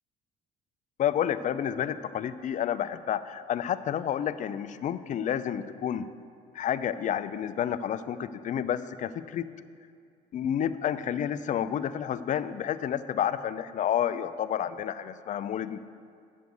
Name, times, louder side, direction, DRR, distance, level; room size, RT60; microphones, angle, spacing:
voice 1, 1.0-6.1 6.5-9.5 10.3-15.8, left 9 dB, 45° left, 13 dB, 0.4 m, -30 dB
9.2 x 6.3 x 7.0 m, 2.3 s
cardioid pair, 110°, 17 cm